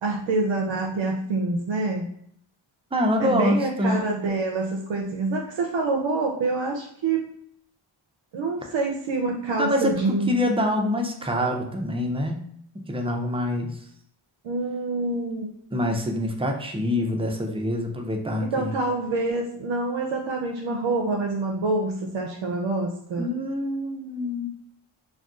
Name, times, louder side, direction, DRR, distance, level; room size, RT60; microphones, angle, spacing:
voice 1, 0.0-2.0 3.2-7.3 8.3-10.3 14.4-15.5 18.4-23.3, right 3 dB, 65° right, 0 dB, 0.6 m, -26 dB
voice 2, 2.9-4.0 9.6-12.4 12.9-13.8 15.7-18.7 23.2-24.5, left 1 dB, 10° right, 2 dB, 0.4 m, -25 dB
2.5 x 2.3 x 3.6 m, 0.68 s
wide cardioid pair, 75°, 49 cm